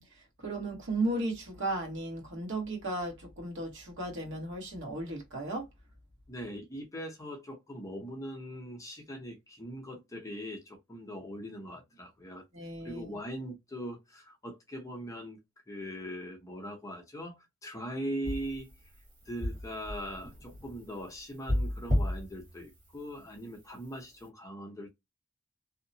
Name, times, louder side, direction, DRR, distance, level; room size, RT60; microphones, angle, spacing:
voice 1, 0.0-5.6 12.5-13.1, right 2 dB, 55° right, 1.1 m, -35 dB
voice 2, 6.3-12.4 12.8-15.4 15.7-18.7 19.3-24.9, equal, 15° left, 0.7 m, -41 dB
sound 1, 18.2-23.4 23.7-24.2, left 1 dB, 35° right, 1.4 m, -34 dB
2.8 x 2.0 x 2.6 m
head